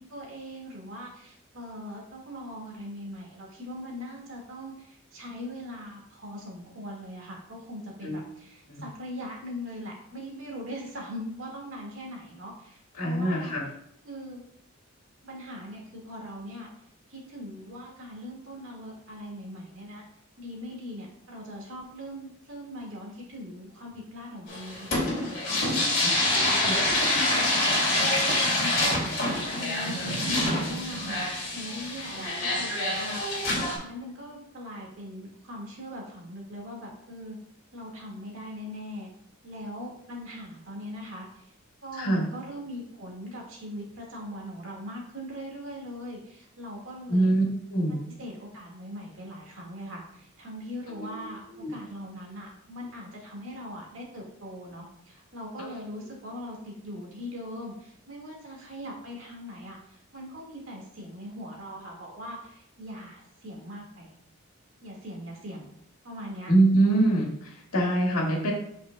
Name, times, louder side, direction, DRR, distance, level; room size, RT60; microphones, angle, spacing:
voice 1, 0.0-13.5 14.0-14.4 15.2-16.7 17.1-20.0 20.4-26.9 27.3-27.9 28.2-37.4 37.7-39.1 39.4-41.5 41.8-47.3 48.2-64.2 64.8-65.7 66.0-66.5, equal, 60° right, -1 dB, 1.9 m, -41 dB
voice 2, 13.0-13.6 26.0-26.8 42.0-42.2 47.1-47.4 47.7-48.0 51.0-51.2 51.6-51.7 55.6-55.7 66.5-68.5, right 2 dB, 85° left, -1 dB, 1.9 m, -24 dB
sound 1, 24.5-33.8, left 1 dB, 40° left, 2.5 m, -26 dB
8.2 x 5.5 x 2.3 m, 0.75 s
head